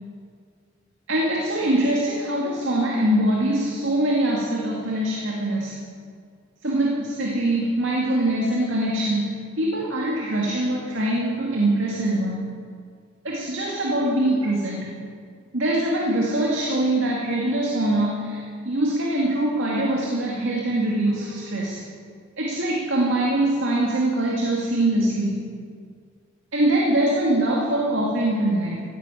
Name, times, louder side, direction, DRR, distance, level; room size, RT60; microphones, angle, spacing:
voice 1, 1.1-5.8 6.6-12.5 13.2-15.0 15.5-21.8 22.4-25.5 26.5-28.8, right 1 dB, 75° right, -3 dB, 2.1 m, -23 dB
15.0 x 10.5 x 9.0 m, 2.2 s
head